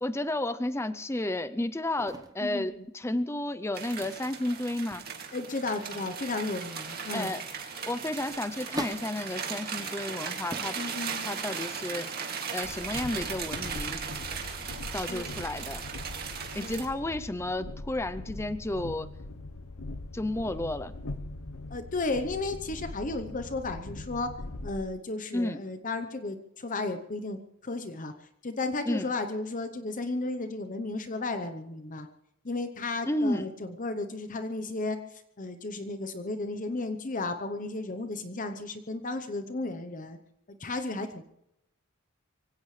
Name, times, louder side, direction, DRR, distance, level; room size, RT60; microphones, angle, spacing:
voice 1, 0.0-5.0 7.1-7.4 7.9-10.8 11.3-12.1 12.5-14.0 14.9-15.8 16.5-19.1 20.1-20.9 25.3-25.6 28.9-29.1 33.1-33.5, left 1 dB, 10° left, 11 dB, 0.5 m, -32 dB
sound 1, 2.0-2.5 3.5-4.5 4.9-5.4 5.6-7.3 7.9-9.4 10.0-10.1 10.4-10.8 11.2-12.6, right 1 dB, 15° right, 1.0 m, -43 dB
sound 2, 3.7-16.9, right 6 dB, 45° right, 2.4 m, -37 dB
voice 2, 5.3-7.3 10.8-11.3 15.1-15.3 16.6-16.8 21.7-24.3 24.6-28.1 28.4-32.1 32.4-40.2 40.5-41.2, left 2 dB, 40° left, 8 dB, 0.9 m, -34 dB
Train, 12.6-24.9, left 2 dB, 85° left, 1.0 m, -41 dB
24.5 x 16.5 x 3.3 m, 0.81 s
head